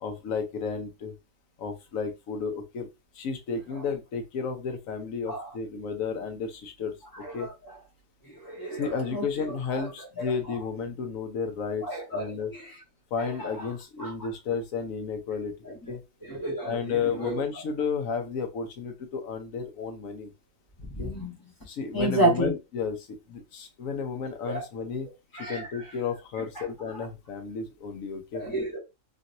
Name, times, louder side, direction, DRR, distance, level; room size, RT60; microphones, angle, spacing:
voice 1, 0.0-1.1 1.6-2.9 3.1-7.5 8.8-12.5 13.1-16.0 16.6-20.3 21.0-21.1 21.7-25.1 25.3-28.4, left 5 dB, 80° left, 1.1 m, -32 dB
voice 2, 7.2-7.5 8.3-9.2 9.7-9.9 10.2-10.3 11.8-12.2 12.5-12.7 13.2-13.7 14.0-14.1 15.6-15.9 16.3-17.4 20.9-21.3 21.9-22.5 24.4-24.6 25.3-25.7 26.6-26.7 27.0-27.1 28.3-28.8, right 2 dB, 15° left, 1.1 m, -30 dB
3.1 x 2.8 x 2.5 m
omnidirectional pair, 1.4 m